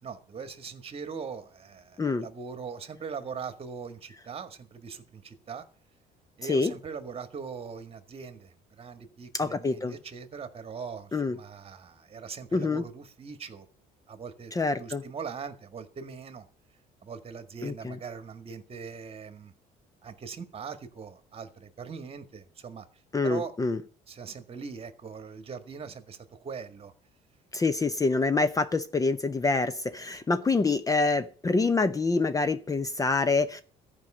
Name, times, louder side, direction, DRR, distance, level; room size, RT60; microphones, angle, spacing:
voice 1, 0.0-5.6 6.4-13.7 14.1-14.5 14.8-16.5 17.0-19.5 20.0-22.9 23.2-23.5 24.1-26.9, right 6 dB, 35° right, 1.8 m, -41 dB
voice 2, 9.3-9.9 11.1-11.4 12.5-12.8 14.5-15.0 17.6-18.0 23.1-23.8 27.5-33.6, left 3 dB, 20° left, 0.7 m, -26 dB
14.0 x 5.3 x 8.8 m
cardioid pair, 110°, 17 cm